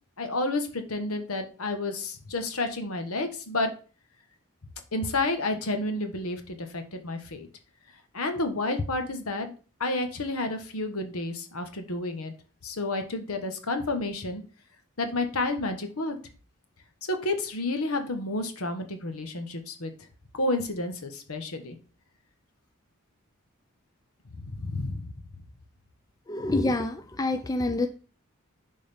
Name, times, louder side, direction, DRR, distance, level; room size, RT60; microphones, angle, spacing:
voice 1, 0.2-3.7 4.9-7.5 8.1-9.5 9.8-12.3 12.6-14.4 15.0-16.1 17.1-19.9 20.3-21.7 24.3-25.1, left 2 dB, 80° left, 6 dB, 1.2 m, -30 dB
voice 2, 26.3-27.9, left 2 dB, 15° left, 8 dB, 0.4 m, -27 dB
10.5 x 3.9 x 3.4 m, 0.37 s
head